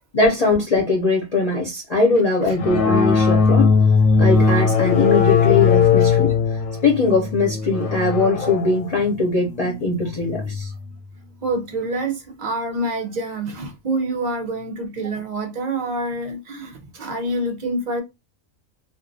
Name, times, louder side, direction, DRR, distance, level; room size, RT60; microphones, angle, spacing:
voice 1, 0.1-3.8 4.2-10.7, left 3 dB, 50° left, 0.4 m, -20 dB
sound 1, 2.6-10.7, left 5 dB, 90° left, 1.0 m, -19 dB
voice 2, 11.4-18.0, right 2 dB, 55° right, 0.5 m, -27 dB
2.5 x 2.2 x 2.5 m
omnidirectional pair, 1.4 m